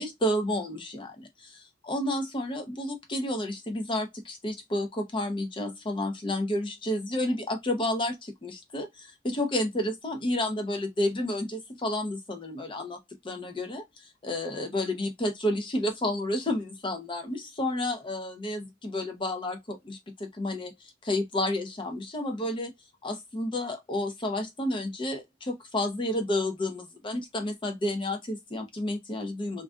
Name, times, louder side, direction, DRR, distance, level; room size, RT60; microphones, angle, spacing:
voice 1, 0.0-13.0 13.2-22.7 23.0-29.6, left 1 dB, 30° left, 0.6 m, -31 dB
2.4 x 2.3 x 2.2 m
head